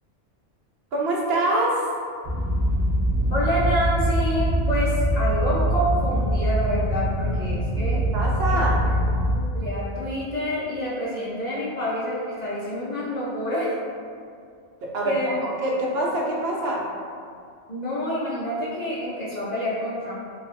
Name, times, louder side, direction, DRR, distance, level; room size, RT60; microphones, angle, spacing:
voice 1, 0.9-1.8 8.1-8.8 14.8-16.8, right 1 dB, 65° right, -3 dB, 0.7 m, -25 dB
sound 1, 2.2-9.3, right 1 dB, 20° right, 0.5 m, -23 dB
voice 2, 3.3-8.0 8.5-9.0 9.3-13.7 15.0-15.4 17.7-20.1, equal, 55° left, -9 dB, 0.5 m, -28 dB
3.2 x 2.2 x 2.6 m, 2.3 s
omnidirectional pair, 1.3 m